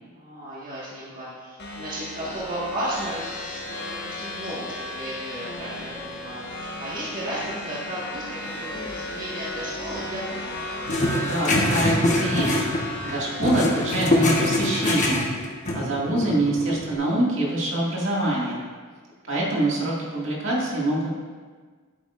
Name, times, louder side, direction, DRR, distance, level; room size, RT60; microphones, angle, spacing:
voice 1, 0.1-10.6, right 1 dB, 40° right, -7 dB, 1.7 m, -34 dB
sound 1, 1.6-14.9, left 2 dB, 50° left, 1.5 m, -35 dB
sound 2, 10.9-13.1 13.4-16.9, left 1 dB, 35° left, 1.2 m, -24 dB
voice 2, 11.2-15.3 15.7-18.6 19.3-21.1, right 1 dB, 60° right, -5 dB, 2.1 m, -25 dB
11.0 x 8.7 x 2.5 m, 1.5 s
head